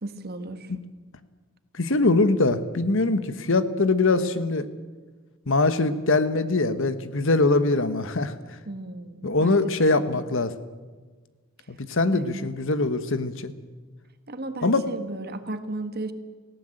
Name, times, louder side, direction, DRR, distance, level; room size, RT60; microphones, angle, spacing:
voice 1, 0.0-0.7 8.6-9.6 10.0-10.2 12.1-12.4 14.3-16.1, right 2 dB, 45° right, 10 dB, 1.5 m, -35 dB
voice 2, 1.7-4.7 5.5-8.3 9.2-10.5 11.7-13.5 14.6-14.9, left 3 dB, 60° left, 12 dB, 1.2 m, -22 dB
18.5 x 16.0 x 9.0 m, 1.4 s
head